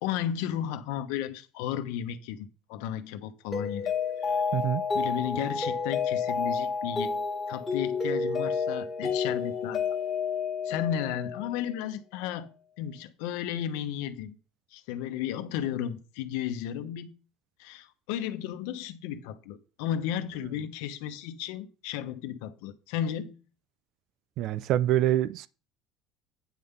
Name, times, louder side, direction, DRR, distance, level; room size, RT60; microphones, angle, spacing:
voice 1, 0.0-3.9 4.2-4.4 4.9-7.2 7.5-10.0 10.6-12.5 12.8-14.4 14.7-17.1 17.6-23.3, left 10 dB, 85° left, 1.0 m, -34 dB
Mallet percussion, 3.5-11.7, left 5 dB, 15° left, 1.8 m, -30 dB
voice 2, 4.5-4.8 24.4-25.5, right 13 dB, 55° right, 0.3 m, -25 dB
9.3 x 3.8 x 6.9 m
cardioid pair, 150°, 0 cm